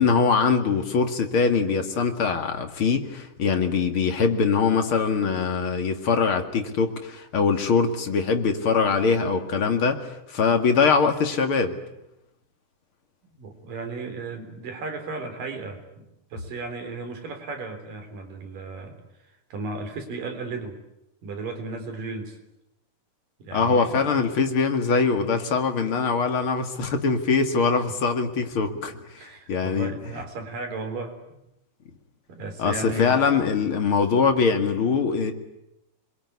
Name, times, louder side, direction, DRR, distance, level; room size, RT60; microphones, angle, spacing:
voice 1, 0.0-11.8 23.5-28.9 29.5-29.9 32.6-35.3, left 5 dB, 45° left, 6 dB, 2.6 m, -22 dB
voice 2, 13.4-16.1 16.3-19.0 19.5-20.8 21.2-22.4 23.4-24.2 28.7-28.8 29.2-31.4 32.3-33.4, right 3 dB, 80° right, 5 dB, 5.4 m, -35 dB
27.0 x 22.5 x 9.7 m, 0.86 s
omnidirectional pair, 3.8 m